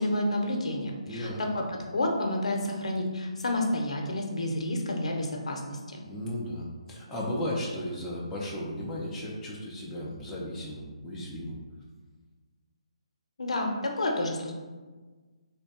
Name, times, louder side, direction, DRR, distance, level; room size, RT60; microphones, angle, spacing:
voice 1, 0.0-6.0 13.4-14.5, left 1 dB, 75° left, 1 dB, 0.7 m, -30 dB
voice 2, 1.0-1.4 6.0-11.6, left 1 dB, 10° left, -5 dB, 0.5 m, -35 dB
3.4 x 2.2 x 4.1 m, 1.3 s
hypercardioid pair, 155°, 3 cm